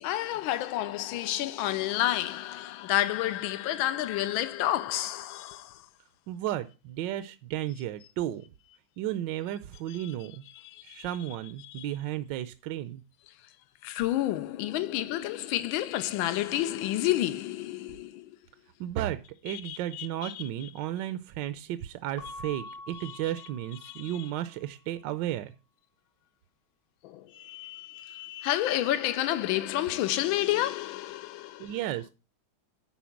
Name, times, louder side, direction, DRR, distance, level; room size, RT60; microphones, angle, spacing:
voice 1, 0.0-5.9 9.9-10.1 10.5-11.1 11.6-11.9 13.8-18.4 19.5-20.7 23.0-23.2 23.8-24.3 27.0-31.8, left 14 dB, 90° left, 1.4 m, -30 dB
voice 2, 6.3-8.4 9.0-10.4 10.8-13.0 18.8-25.5 31.6-32.1, right 12 dB, 75° right, 1.1 m, -34 dB
Keyboard (musical) / Bell, 22.2-24.6, left 2 dB, 60° left, 1.2 m, -46 dB
10.0 x 4.5 x 5.7 m
omnidirectional pair, 2.2 m